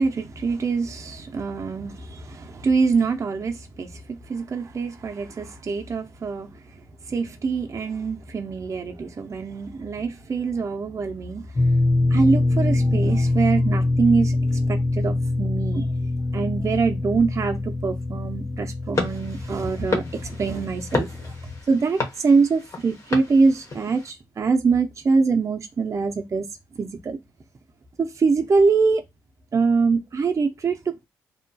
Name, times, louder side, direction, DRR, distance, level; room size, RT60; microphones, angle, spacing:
voice 1, 0.0-6.5 7.1-11.5 12.1-14.4 14.7-15.9 16.3-21.3 21.7-26.5 26.8-27.2 28.0-29.0 29.5-31.1, right 4 dB, 40° right, 0.6 m, -24 dB
sound 1, 11.6-21.6, left 2 dB, 20° left, 0.3 m, -24 dB
sound 2, 18.9-24.1, left 3 dB, 40° left, 1.1 m, -32 dB
2.8 x 2.4 x 2.3 m
supercardioid pair, 55°, 8 cm